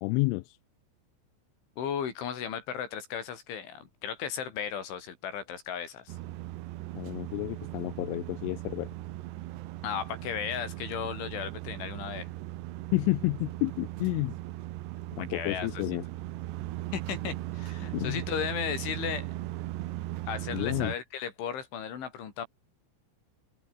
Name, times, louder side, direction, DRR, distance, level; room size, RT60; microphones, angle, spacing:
voice 1, 0.0-0.6 7.0-8.9 12.9-14.3 15.1-16.0 17.9-18.2 20.5-20.9, left 24 dB, 90° left, 3.1 m, -30 dB
voice 2, 1.8-6.2 9.8-12.3 15.2-15.8 16.9-19.3 20.3-22.5, left 8 dB, 75° left, 6.3 m, -35 dB
sound 1, 6.1-21.0, right 17 dB, 75° right, 2.9 m, -38 dB
omnidirectional pair, 5.6 m